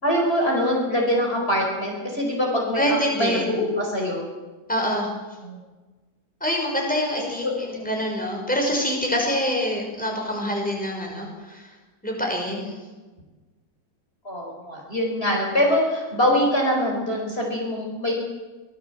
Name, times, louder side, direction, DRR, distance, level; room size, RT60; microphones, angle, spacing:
voice 1, 0.0-4.3 5.4-5.6 7.4-7.8 14.2-18.1, equal, 35° left, -1 dB, 5.1 m, -24 dB
voice 2, 2.8-3.5 4.7-5.1 6.4-11.7 12.0-12.8, equal, 5° left, 0 dB, 5.8 m, -25 dB
25.0 x 20.0 x 8.0 m, 1.3 s
omnidirectional pair, 1.9 m